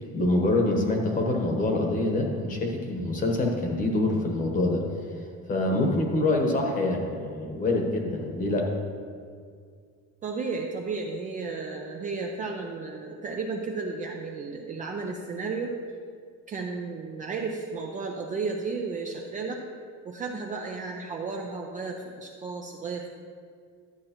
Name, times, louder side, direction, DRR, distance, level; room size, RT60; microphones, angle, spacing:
voice 1, 0.1-4.8 5.5-8.7, left 2 dB, 25° left, 1 dB, 1.1 m, -25 dB
voice 2, 10.2-15.8 16.5-19.6 20.0-23.1, right 4 dB, 25° right, 0 dB, 0.4 m, -33 dB
12.0 x 7.6 x 3.0 m, 2.1 s
cardioid pair, 170°, 32 cm